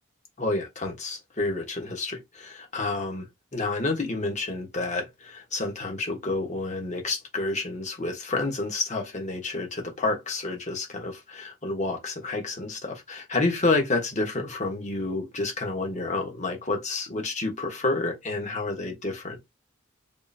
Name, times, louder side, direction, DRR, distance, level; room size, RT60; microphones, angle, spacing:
voice 1, 0.4-3.3 3.5-19.5, left 3 dB, 35° left, 1.1 m, -29 dB
3.7 x 3.1 x 2.7 m
head